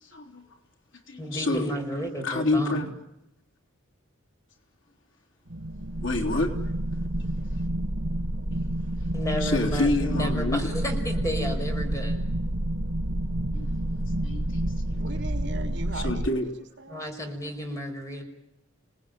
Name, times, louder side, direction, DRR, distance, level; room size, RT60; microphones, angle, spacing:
voice 1, 0.0-0.5 1.1-1.7 2.2-2.9 6.0-6.5 9.4-10.7 13.5-13.7 14.2-15.0 16.0-16.5, left 2 dB, 70° left, 1 dB, 3.6 m, -28 dB
voice 2, 1.2-2.8 9.1-12.1 16.9-18.2, equal, 15° left, 3 dB, 5.6 m, -32 dB
sound 1, 5.5-16.3, right 1 dB, 85° right, 1.6 m, -29 dB
voice 3, 15.0-17.0, right 2 dB, 60° right, 5 dB, 3.4 m, -40 dB
29.5 x 19.5 x 9.3 m, 0.87 s
head